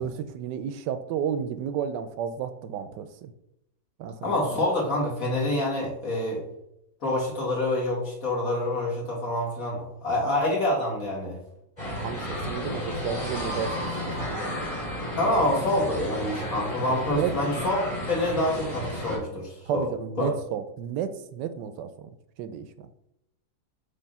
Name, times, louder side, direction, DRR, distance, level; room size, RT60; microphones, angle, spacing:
voice 1, 0.0-3.3 4.0-4.6 12.0-13.8 14.3-14.8 15.2-15.3 17.1-17.7 19.7-22.1 22.4-22.9, right 8 dB, 80° right, 11 dB, 1.2 m, -32 dB
voice 2, 4.2-6.4 7.0-11.4 15.2-17.8 18.1-19.9 20.2-20.3, left 1 dB, 50° left, -4 dB, 2.3 m, -27 dB
sound 1, 11.8-19.2, left 1 dB, 15° left, 2.8 m, -32 dB
6.6 x 3.4 x 5.4 m, 0.81 s
omnidirectional pair, 1.9 m